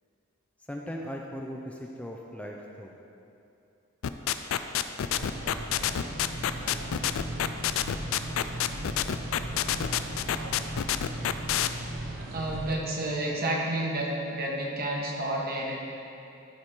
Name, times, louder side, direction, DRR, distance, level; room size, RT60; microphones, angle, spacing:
voice 1, 0.7-2.9, equal, 5° left, 0 dB, 0.5 m, -38 dB
sound 1, 4.0-11.7, left 10 dB, 70° left, 0.4 m, -27 dB
sound 2, 5.1-12.7, right 1 dB, 65° right, 0.9 m, -37 dB
voice 2, 12.2-15.8, right 1 dB, 45° right, -2 dB, 1.4 m, -30 dB
13.0 x 5.0 x 4.4 m, 2.7 s
head